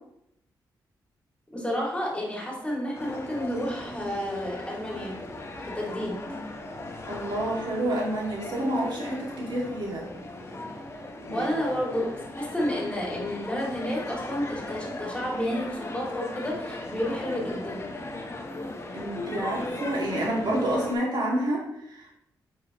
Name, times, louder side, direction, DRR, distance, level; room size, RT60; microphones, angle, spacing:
voice 1, 1.5-5.2 5.6-6.4 11.3-17.9, equal, 15° left, -3 dB, 2.6 m, -31 dB
sound 1, 2.9-20.9, left 2 dB, 30° left, 1.1 m, -38 dB
voice 2, 7.0-10.1 11.2-11.5 18.9-22.1, right 1 dB, 65° right, -3 dB, 2.2 m, -29 dB
8.0 x 4.7 x 3.0 m, 0.80 s
cardioid pair, 60°, 8 cm